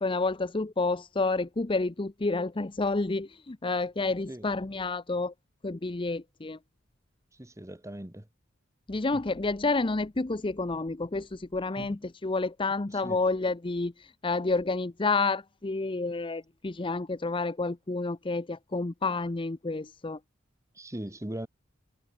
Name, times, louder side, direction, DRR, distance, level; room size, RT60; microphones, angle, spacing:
voice 1, 0.0-5.3 5.6-6.6 8.9-20.2, left 3 dB, 25° left, 0.6 m, -29 dB
voice 2, 7.4-8.2 11.8-12.0 13.0-13.2 20.8-21.5, right 1 dB, 15° right, 1.5 m, -39 dB
head